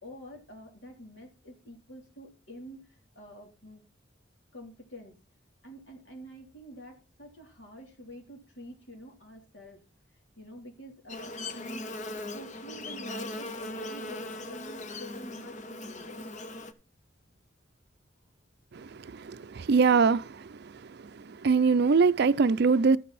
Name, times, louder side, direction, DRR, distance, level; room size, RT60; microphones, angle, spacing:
voice 1, 0.0-3.8 4.5-5.2 5.6-9.8 10.4-11.9 12.3-16.3, equal, 70° left, 3.5 m, -47 dB
Buzz, 11.1-16.7, left 2 dB, 40° left, 0.8 m, -39 dB
voice 2, 18.8-20.4 21.3-23.0, right 5 dB, 60° right, 0.5 m, -23 dB
13.0 x 7.3 x 4.2 m
head